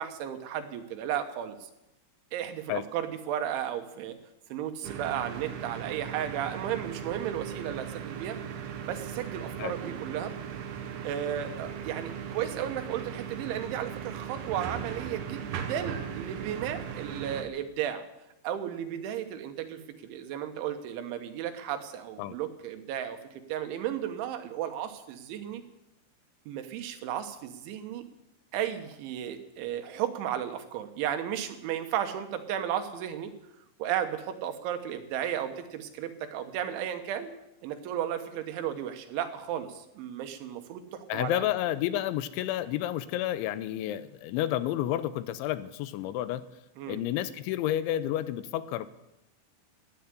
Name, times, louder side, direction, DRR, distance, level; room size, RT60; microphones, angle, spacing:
voice 1, 0.0-1.7 2.3-4.2 4.5-8.4 8.9-10.3 11.0-18.1 18.4-23.2 23.5-25.6 26.5-28.1 28.5-33.3 33.8-37.3 37.6-41.5 46.8-47.0, right 10 dB, 85° right, 7 dB, 3.6 m, -34 dB
sound 1, 4.8-17.4, right 8 dB, 65° right, 2.8 m, -38 dB
voice 2, 41.1-46.4 46.9-48.9, left 13 dB, 85° left, 14 dB, 3.1 m, -30 dB
13.5 x 9.6 x 9.8 m, 0.91 s
omnidirectional pair, 5.3 m